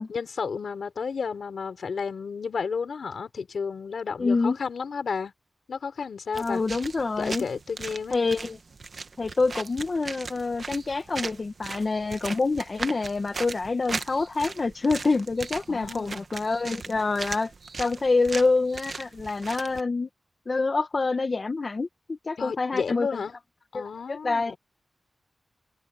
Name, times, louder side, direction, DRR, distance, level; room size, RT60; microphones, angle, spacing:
voice 1, 0.1-5.3 5.7-6.6 7.2-8.2 15.7-16.2 22.4-23.4 23.7-24.6, left 5 dB, 80° left, 4.8 m, -32 dB
voice 2, 4.2-4.6 6.4-7.5 8.1-8.6 9.2-17.5 17.8-20.1 20.5-23.1 23.7-24.5, left 3 dB, 45° left, 1.5 m, -26 dB
sound 1, 6.3-19.8, right 4 dB, 60° right, 1.4 m, -38 dB
wide cardioid pair, 85°, 0 cm